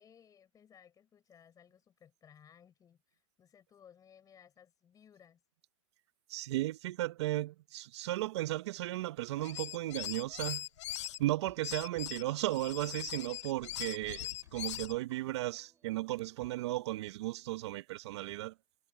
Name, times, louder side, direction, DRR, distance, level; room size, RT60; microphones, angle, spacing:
voice 1, 0.0-5.4, left 8 dB, 20° left, 7.0 m, -61 dB
voice 2, 6.3-10.7 11.2-18.5, right 16 dB, 55° right, 1.1 m, -35 dB
sound 1, 9.4-11.2 11.6-15.0, left 14 dB, 60° left, 0.8 m, -41 dB
sound 2, 11.5-16.7, right 6 dB, 15° right, 7.0 m, -64 dB
hypercardioid pair, 125°, 17 cm